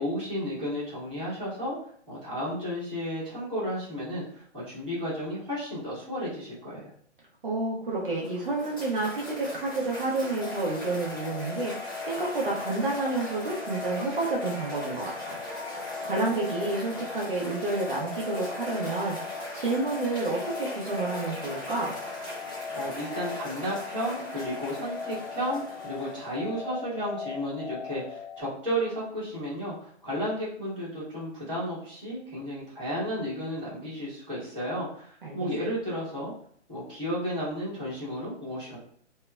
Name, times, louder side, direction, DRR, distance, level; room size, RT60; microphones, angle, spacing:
voice 1, 0.0-1.8 2.1-6.9 22.7-36.3 36.7-38.8, equal, 5° right, -17 dB, 0.8 m, -33 dB
voice 2, 7.4-11.7 12.0-15.4 16.0-19.2 19.5-21.9 35.2-35.4, right 2 dB, 50° right, -3 dB, 0.5 m, -29 dB
Cheering / Applause, 7.9-26.6, equal, 20° left, 0.5 m, -40 dB
sound 1, 10.4-28.4, left 6 dB, 85° left, 0.6 m, -39 dB
2.9 x 2.2 x 2.2 m, 0.62 s
hypercardioid pair, 165°, 36 cm